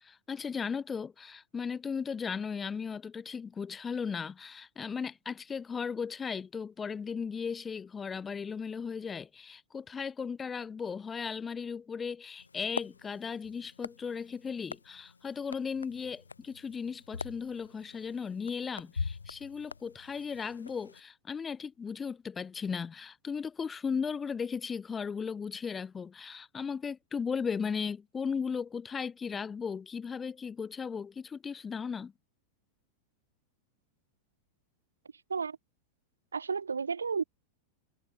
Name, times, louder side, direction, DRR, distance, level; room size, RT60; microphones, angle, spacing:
voice 1, 0.0-32.1, left 6 dB, 20° left, 0.8 m, -36 dB
sound 1, 12.4-21.0, left 4 dB, 75° left, 0.5 m, -44 dB
voice 2, 36.3-37.2, right 5 dB, 75° right, 0.4 m, -32 dB
figure-of-eight pair, 90°, 0 cm